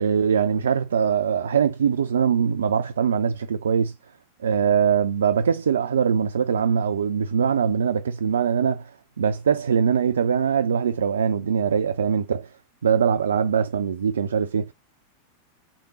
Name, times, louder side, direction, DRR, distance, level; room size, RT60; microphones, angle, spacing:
voice 1, 0.0-3.9 4.4-8.9 9.2-12.5 12.8-14.7, right 7 dB, 65° right, 0.3 m, -22 dB
3.6 x 3.5 x 4.1 m
figure-of-eight pair, 90°, 0 cm